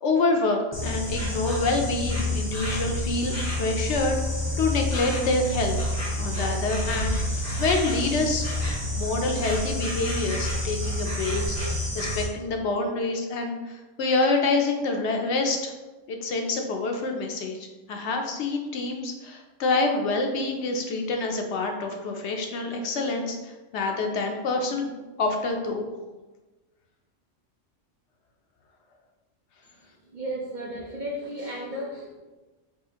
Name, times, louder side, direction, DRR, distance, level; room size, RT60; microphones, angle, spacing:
voice 1, 0.0-4.2 4.6-8.5 8.9-15.7 16.1-24.9 25.2-25.8, left 3 dB, 70° left, 3 dB, 0.8 m, -27 dB
Insect, 0.7-12.2, left 1 dB, 20° left, 0.5 m, -29 dB
voice 2, 30.1-32.2, equal, 55° right, -3 dB, 0.6 m, -34 dB
4.8 x 2.4 x 2.8 m, 1.1 s
omnidirectional pair, 1.3 m